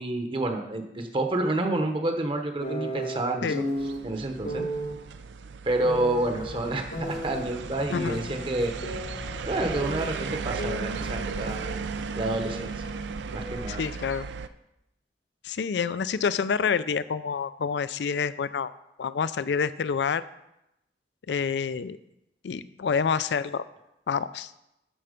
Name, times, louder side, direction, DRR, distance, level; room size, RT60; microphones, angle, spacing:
voice 1, 0.0-3.5 4.0-4.6 5.6-8.7 9.4-11.7 12.1-12.7 13.3-13.8, right 2 dB, 30° right, 5 dB, 0.9 m, -29 dB
sound 1, 2.6-4.0 4.4-5.0 5.8-7.5 7.9-9.5 9.7-11.9 12.1-13.7, equal, 90° left, 2.4 m, -35 dB
sound 2, 3.8-14.5, right 5 dB, 85° right, 0.4 m, -36 dB
sound 3, 6.4-12.1, equal, ahead, 0.4 m, -44 dB
voice 2, 13.7-14.3 15.4-18.7 19.0-20.2 21.3-22.0 22.4-23.6 24.1-24.5, left 6 dB, 75° left, 15 dB, 0.4 m, -28 dB
12.5 x 4.4 x 5.1 m, 0.87 s
head